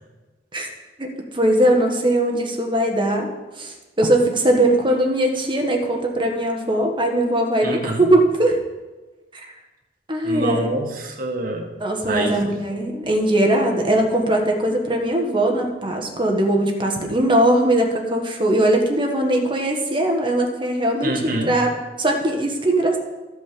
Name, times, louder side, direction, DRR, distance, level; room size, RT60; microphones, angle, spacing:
voice 1, 1.0-3.3 3.6-8.6 10.1-10.7 11.8-21.7 22.0-23.0, right 1 dB, 30° right, 2 dB, 1.5 m, -20 dB
voice 2, 7.6-8.0 10.2-11.7 12.0-12.6 21.0-21.5, right 1 dB, 55° right, 2 dB, 1.7 m, -26 dB
14.5 x 5.3 x 5.1 m, 1.2 s
head